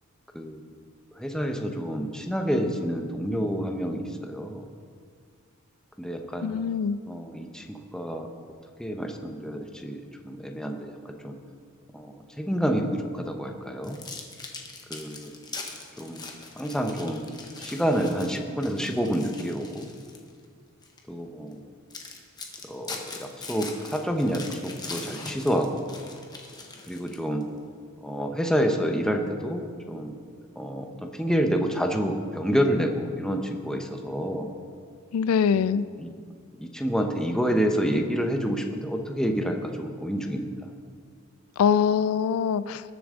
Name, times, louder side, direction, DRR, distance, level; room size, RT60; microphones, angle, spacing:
voice 1, 1.2-4.7 6.0-6.5 7.1-8.3 8.8-10.9 11.2-11.4 11.9-14.0 14.9-15.3 16.0-16.3 16.6-17.3 17.6-19.9 21.1-21.6 22.7-25.8 26.9-27.4 28.0-29.6 29.9-30.2 30.6-30.9 31.2-34.5 35.5-36.1 36.6-40.5, equal, 5° left, 3 dB, 0.8 m, -28 dB
voice 2, 6.4-7.0 35.1-35.9 41.6-42.8, left 7 dB, 90° left, 16 dB, 0.3 m, -23 dB
sound 1, 13.8-20.3 20.8-21.0 21.5-21.6 21.9-27.4, left 3 dB, 20° left, 1.1 m, -41 dB
19.5 x 7.1 x 3.7 m, 2.1 s
head